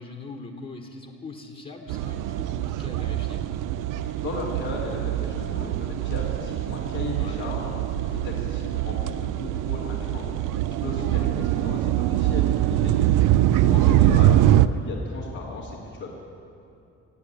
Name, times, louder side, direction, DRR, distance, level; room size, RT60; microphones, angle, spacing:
voice 1, 0.0-3.4 7.1-7.5 10.9-11.3, left 3 dB, 30° left, 2 dB, 1.3 m, -42 dB
sound 1, 1.9-14.7, right 13 dB, 85° right, 0.5 m, -23 dB
voice 2, 4.0-16.2, left 3 dB, 85° left, -6 dB, 2.2 m, -37 dB
15.5 x 8.4 x 8.6 m, 2.8 s
cardioid pair, 90°, 30 cm